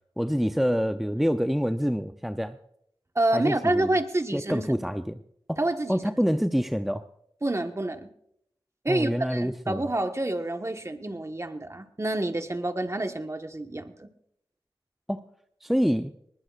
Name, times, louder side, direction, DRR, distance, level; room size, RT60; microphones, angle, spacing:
voice 1, 0.2-2.6 3.3-3.9 4.3-5.2 5.5-5.6 5.9-7.0 8.9-9.8 15.1-15.3 15.6-16.1, equal, ahead, 8 dB, 0.6 m, -26 dB
voice 2, 3.1-4.7 5.6-6.0 7.4-8.1 8.8-14.1, right 1 dB, 30° right, 6 dB, 1.3 m, -28 dB
20.5 x 20.0 x 2.5 m, 0.73 s
wide cardioid pair, 50°, 9 cm